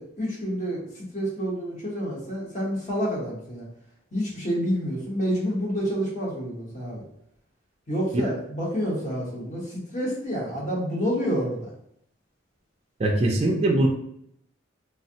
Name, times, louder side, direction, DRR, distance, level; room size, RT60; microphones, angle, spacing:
voice 1, 0.0-3.6 4.1-7.0 7.9-11.7, equal, 35° left, -4 dB, 0.9 m, -28 dB
voice 2, 13.0-13.9, right 1 dB, 30° right, 0 dB, 0.3 m, -21 dB
3.3 x 2.1 x 2.7 m, 0.72 s
head